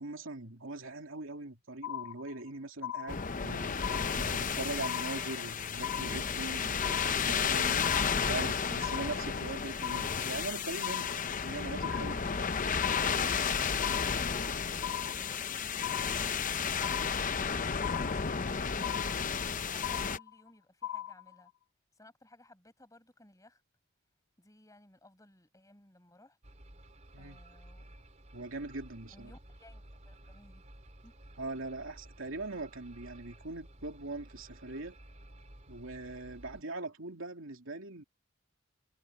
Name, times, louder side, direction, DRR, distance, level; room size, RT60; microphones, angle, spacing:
voice 1, 0.0-7.8 8.1-12.5 27.1-27.4 28.3-29.3 31.4-35.0 35.7-38.0, right 2 dB, 80° right, 2.7 m, -41 dB
sound 1, 1.8-2.5 2.8-3.5 3.8-4.5 4.8-5.5 5.8-6.5 6.8-7.5 7.8-8.5 8.8-9.5 9.8-10.5 10.8-11.5 11.8-12.5 12.8-13.5 13.8-14.5 14.8-15.5 15.8-16.5 16.8-17.5 17.8-18.5 18.8-19.5 19.8-20.5 20.8-21.5, left 11 dB, 60° left, 1.1 m, -39 dB
sound 2, 3.1-20.2, left 6 dB, 40° left, 0.7 m, -32 dB
voice 2, 19.5-21.5 21.9-23.6 24.4-26.4 27.2-27.8 29.1-30.6 31.0-31.2, left 1 dB, 15° left, 6.5 m, -59 dB
sound 3, 26.4-36.6, right 1 dB, 35° right, 3.8 m, -54 dB
head